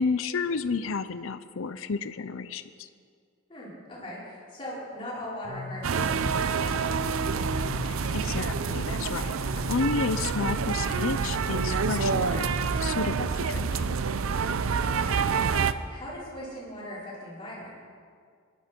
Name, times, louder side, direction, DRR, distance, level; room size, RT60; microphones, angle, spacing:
voice 1, 0.0-2.9 7.8-12.5 12.8-14.0, left 4 dB, 75° left, 12 dB, 0.6 m, -31 dB
voice 2, 3.5-7.0 14.6-15.6 15.9-17.7, left 1 dB, 25° left, -8 dB, 4.8 m, -40 dB
sound 1, 5.4-13.0, left 3 dB, 55° right, 3.0 m, -40 dB
sound 2, 5.8-15.7, right 5 dB, 80° right, 0.5 m, -27 dB
20.0 x 11.5 x 4.5 m, 2.2 s
head